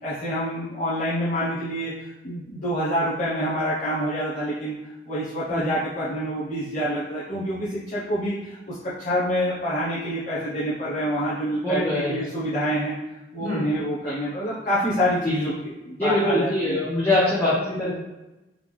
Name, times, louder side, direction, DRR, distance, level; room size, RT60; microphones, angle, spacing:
voice 1, 0.0-4.8 5.0-13.0 13.3-16.8, equal, 45° left, -11 dB, 1.0 m, -27 dB
voice 2, 11.6-12.3 13.4-13.6 14.1-14.2 15.2-15.5 16.0-18.0, left 1 dB, 10° left, -9 dB, 0.9 m, -24 dB
3.8 x 3.5 x 3.3 m, 1.0 s
head